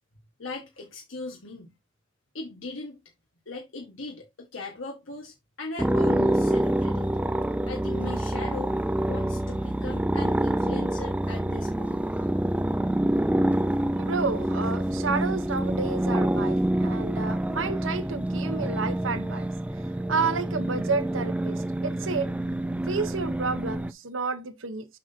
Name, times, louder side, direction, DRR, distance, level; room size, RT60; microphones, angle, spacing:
voice 1, 0.4-1.7 2.3-3.0 3.4-7.1 7.6-8.7 9.0-12.0, left 3 dB, 85° left, 1.6 m, -39 dB
sound 1, 5.8-23.9, right 1 dB, 5° right, 0.3 m, -27 dB
voice 2, 14.0-19.5 20.1-22.3 22.9-24.9, right 4 dB, 80° right, 1.0 m, -30 dB
7.4 x 6.0 x 2.8 m
head